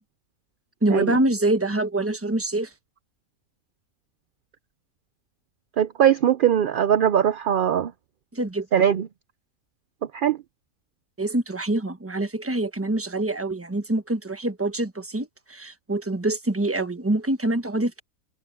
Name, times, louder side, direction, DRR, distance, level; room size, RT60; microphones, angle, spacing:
voice 1, 0.8-2.7 8.3-8.8 11.2-18.0, right 2 dB, 10° right, 1.0 m, -25 dB
voice 2, 5.8-7.9 8.7-9.1 10.1-10.4, right 9 dB, 60° right, 0.5 m, -20 dB
omnidirectional pair, 1.4 m